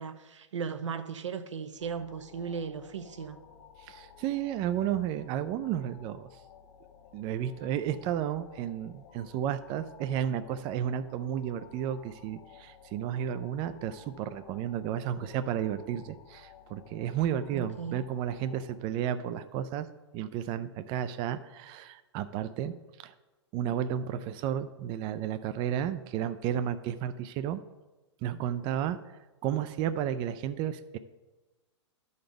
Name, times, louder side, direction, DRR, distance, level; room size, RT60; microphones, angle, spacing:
voice 1, 0.0-3.4 17.5-18.0, right 6 dB, 80° right, 0.7 m, -37 dB
sound 1, 1.8-18.8, left 7 dB, 40° left, 0.9 m, -55 dB
voice 2, 3.8-6.3 7.1-19.9 20.1-22.7 23.0-23.1 23.5-27.6 28.2-29.0 29.4-31.0, right 10 dB, 30° right, 0.4 m, -32 dB
11.5 x 4.0 x 5.2 m
hypercardioid pair, 115°, 15 cm